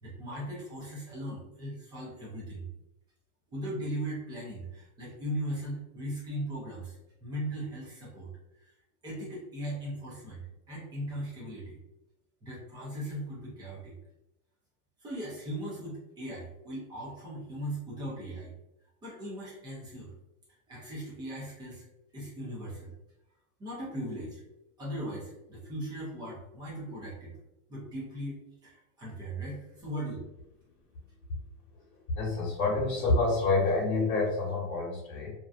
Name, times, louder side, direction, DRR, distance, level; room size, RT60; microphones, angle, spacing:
voice 1, 0.0-2.7 3.5-8.3 8.6-8.7 9.0-10.4 10.7-11.8 12.4-13.9 15.0-18.5 19.0-20.1 20.7-21.8 22.1-22.9 23.6-24.4 24.8-27.3 27.7-30.2, right 1 dB, 10° right, -6 dB, 0.4 m, -38 dB
voice 2, 32.2-35.3, left 3 dB, 75° left, -5 dB, 1.0 m, -28 dB
2.5 x 2.3 x 2.3 m, 0.93 s
supercardioid pair, 155°, 43 cm